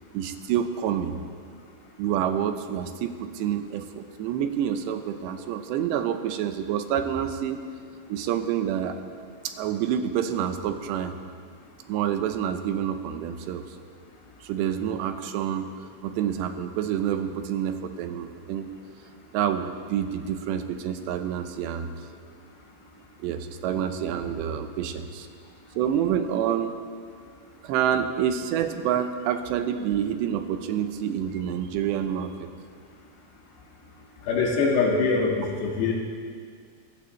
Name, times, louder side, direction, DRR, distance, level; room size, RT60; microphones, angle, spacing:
voice 1, 0.1-1.2 2.0-7.7 8.1-9.0 9.4-11.2 11.9-13.8 14.4-15.7 16.0-18.7 19.3-21.9 23.2-25.3 25.8-26.8 27.6-32.5, right 9 dB, 90° right, 8 dB, 3.1 m, -28 dB
voice 2, 34.3-35.9, left 4 dB, 80° left, -1 dB, 4.0 m, -23 dB
23.5 x 15.5 x 3.2 m, 2.1 s
omnidirectional pair, 4.9 m